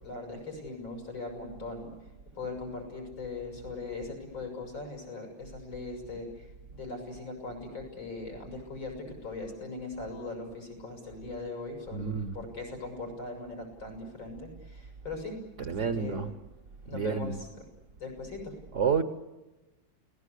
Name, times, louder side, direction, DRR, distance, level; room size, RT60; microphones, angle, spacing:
voice 1, 0.0-1.9 2.3-12.1 12.3-15.4 15.6-16.2 16.8-17.7 18.0-18.6, left 3 dB, 90° left, 8.0 m, -40 dB
voice 2, 11.9-12.4 15.6-16.3 16.9-17.4 18.7-19.0, right 6 dB, 45° right, 1.1 m, -29 dB
29.5 x 19.0 x 8.4 m
omnidirectional pair, 2.1 m